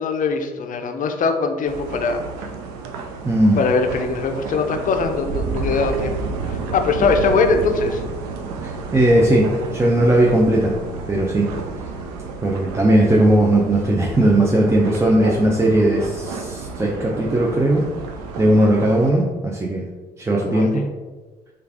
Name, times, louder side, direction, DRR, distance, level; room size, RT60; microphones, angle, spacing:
voice 1, 0.0-2.2 3.6-6.2 6.5-8.0 20.5-20.8, left 4 dB, 40° left, 5 dB, 0.5 m, -21 dB
sound 1, 1.7-19.1, right 4 dB, 70° right, 0.4 m, -31 dB
voice 2, 3.2-3.6 8.6-10.7 11.1-11.5 12.4-17.9 18.4-19.8 20.2-20.9, right 1 dB, 15° right, -3 dB, 0.5 m, -17 dB
3.3 x 2.4 x 3.4 m, 1.2 s
figure-of-eight pair, 45°, 21 cm